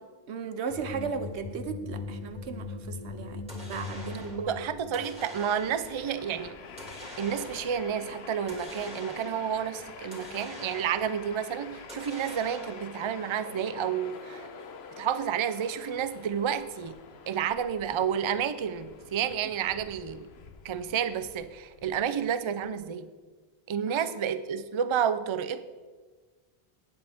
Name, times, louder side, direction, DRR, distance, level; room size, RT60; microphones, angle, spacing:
voice 1, 0.3-3.4 3.7-4.6 23.9-24.0, right 5 dB, 90° right, 10 dB, 1.1 m, -36 dB
sound 1, 0.7-5.3, left 4 dB, 35° left, 0.8 m, -40 dB
sound 2, 3.5-4.5 4.9-6.0 6.8-7.8 8.5-9.5 10.1-11.2 11.9-13.0, equal, 5° right, 2.5 m, -45 dB
voice 2, 4.5-6.6 7.2-14.5 15.0-17.0 17.3-20.3 20.6-23.1 23.7-25.6, right 8 dB, 40° right, 12 dB, 0.4 m, -30 dB
Train, 5.1-22.7, left 6 dB, 75° left, 1.1 m, -47 dB
18.0 x 7.7 x 3.5 m, 1.4 s
omnidirectional pair, 1.1 m